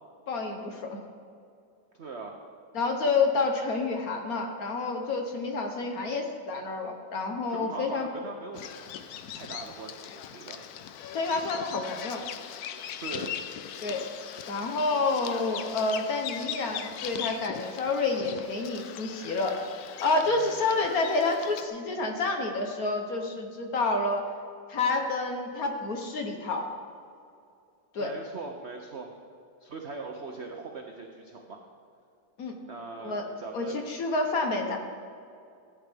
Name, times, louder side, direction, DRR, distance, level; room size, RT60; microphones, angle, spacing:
voice 1, 0.3-1.0 2.7-8.1 11.1-12.2 13.8-14.1 14.5-19.6 20.0-24.3 24.7-26.7 27.9-28.1 32.4-32.6 33.0-33.2 33.5-34.8, left 3 dB, 55° left, 3 dB, 1.2 m, -29 dB
voice 2, 1.9-2.4 7.5-8.9 9.3-10.7 13.0-13.5 20.3-20.6 28.0-29.1 29.6-31.7 32.7-33.9, right 4 dB, 85° right, 2 dB, 0.6 m, -41 dB
Bird vocalization bird call bird song, 8.5-21.7, left 9 dB, 80° left, 0.8 m, -40 dB
14.5 x 8.8 x 3.4 m, 2.5 s
omnidirectional pair, 2.2 m